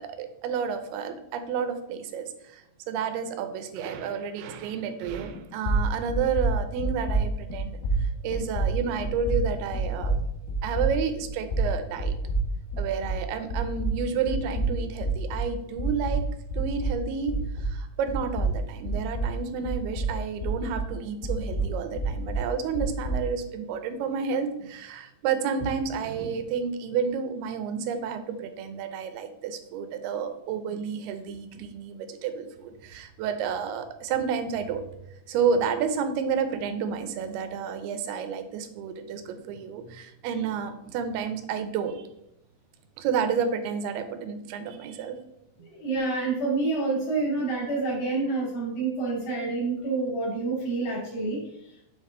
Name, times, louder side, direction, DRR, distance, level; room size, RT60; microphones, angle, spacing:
voice 1, 0.0-10.2 10.6-12.1 12.8-16.3 16.5-34.9 35.3-42.1 43.0-45.2, right 6 dB, 85° right, 8 dB, 2.7 m, -30 dB
sound 1, 5.1-5.4 5.6-13.3 13.5-17.8 18.1-20.9 21.2-23.3, right 2 dB, 75° left, 3.3 m, -28 dB
voice 2, 45.6-51.8, right 3 dB, 60° left, -4 dB, 3.6 m, -28 dB
7.0 x 5.4 x 3.8 m, 0.80 s
omnidirectional pair, 4.5 m